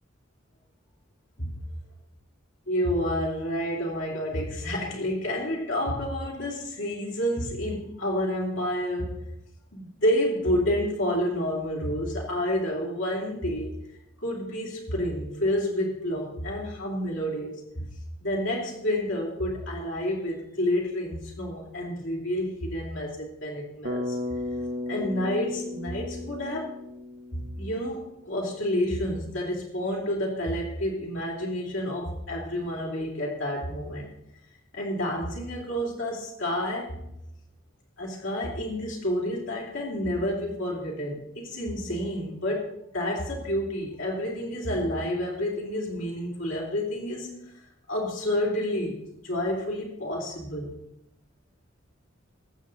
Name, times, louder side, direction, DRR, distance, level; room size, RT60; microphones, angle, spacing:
voice 1, 2.7-9.3 9.7-13.7 14.2-17.9 18.2-24.2 24.9-26.7 27.3-34.0 34.7-37.0 38.0-49.0 49.2-50.8, equal, 70° left, -4 dB, 3.0 m, -29 dB
Bass guitar, 23.8-28.0, left 2 dB, 55° right, 1.0 m, -34 dB
20.0 x 7.9 x 4.1 m, 0.84 s
head